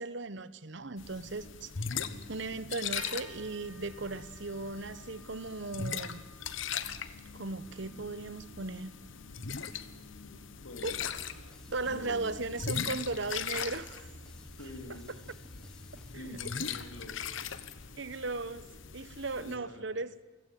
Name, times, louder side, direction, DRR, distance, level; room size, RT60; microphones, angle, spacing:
voice 1, 0.0-1.7 2.3-6.2 7.3-8.9 10.8-11.0 11.7-14.1 16.1-16.4 18.0-18.7 18.9-20.1, right 3 dB, 55° right, 16 dB, 1.0 m, -37 dB
sound 1, 1.0-19.6, left 7 dB, 65° left, 1.2 m, -40 dB
voice 2, 1.9-2.3 10.2-11.0 11.9-12.3 12.6-12.7 14.6-15.2 16.1-17.7 18.5-18.7 19.4-20.0, left 1 dB, 80° left, 4 dB, 3.8 m, -47 dB
sound 2, 3.0-19.2, right 4 dB, 75° right, 2.8 m, -58 dB
sound 3, 10.8-16.3, equal, 5° left, 1.0 m, -53 dB
28.5 x 16.5 x 9.4 m, 1.2 s
head